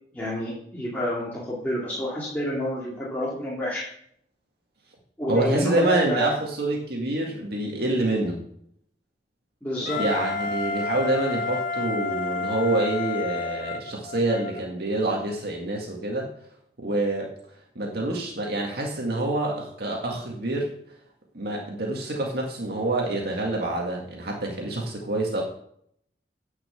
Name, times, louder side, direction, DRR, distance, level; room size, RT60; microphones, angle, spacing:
voice 1, 0.1-3.8 5.2-6.3 9.6-10.0, left 1 dB, 10° left, -8 dB, 2.5 m, -29 dB
voice 2, 5.3-8.4 10.0-16.3 16.8-17.3 17.8-20.7 21.3-25.4, right 2 dB, 60° right, 0 dB, 2.0 m, -26 dB
Wind instrument woodwind instrument, 9.8-14.6, left 3 dB, 50° left, 1.4 m, -30 dB
9.8 x 5.9 x 6.9 m, 0.68 s
head